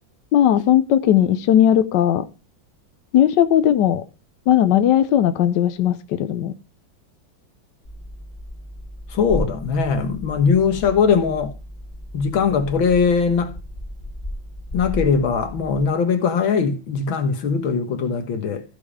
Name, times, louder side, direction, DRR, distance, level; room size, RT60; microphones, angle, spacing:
voice 1, 0.3-2.3 3.1-4.0 4.5-6.5, left 10 dB, 70° left, 1.3 m, -17 dB
sound 1, 7.8-15.9, left 1 dB, 25° left, 1.6 m, -34 dB
voice 2, 9.1-11.6 12.1-13.5 14.7-18.6, left 5 dB, 90° left, 2.1 m, -20 dB
14.0 x 5.3 x 4.9 m
omnidirectional pair, 2.1 m